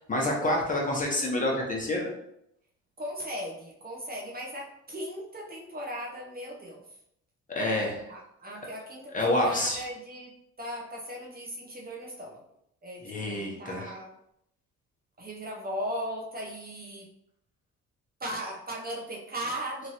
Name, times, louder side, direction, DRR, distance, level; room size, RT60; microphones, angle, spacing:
voice 1, 0.1-2.1 7.6-8.0 9.1-9.8 13.0-13.9, left 1 dB, 25° left, -1 dB, 0.9 m, -27 dB
voice 2, 3.0-6.8 8.1-10.3 10.6-12.4 12.8-14.1 15.2-17.1 18.2-19.9, equal, 30° right, -2 dB, 0.7 m, -37 dB
3.0 x 2.5 x 2.8 m, 0.76 s
cardioid pair, 90°, 30 cm